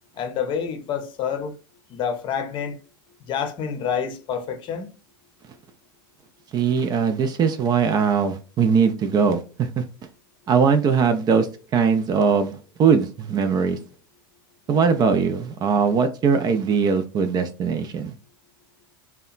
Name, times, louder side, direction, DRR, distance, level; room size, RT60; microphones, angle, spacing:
voice 1, 0.2-1.6 1.9-2.8 3.3-4.9, left 7 dB, 45° left, 0.7 m, -28 dB
voice 2, 6.5-9.8 10.5-11.5 11.7-12.5 12.8-13.8 14.7-18.1, right 6 dB, 35° right, 0.4 m, -20 dB
2.7 x 2.2 x 2.4 m
hypercardioid pair, 95°, 12 cm